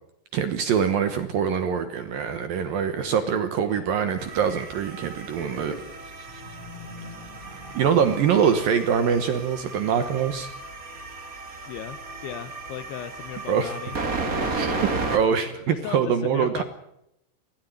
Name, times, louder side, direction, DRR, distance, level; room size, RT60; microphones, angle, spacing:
voice 1, 0.3-5.8 7.7-10.5 13.5-13.7 14.5-16.6, right 7 dB, 65° right, 9 dB, 2.4 m, -24 dB
voice 2, 3.6-4.2 11.7-14.0 14.3-15.2 15.7-16.6, left 10 dB, 75° left, 12 dB, 2.6 m, -38 dB
sound 1, 4.2-15.2, right 3 dB, 35° right, 1.4 m, -34 dB
sound 2, 5.3-8.4, left 1 dB, 15° right, 2.3 m, -43 dB
21.5 x 16.0 x 9.3 m, 0.80 s
omnidirectional pair, 5.4 m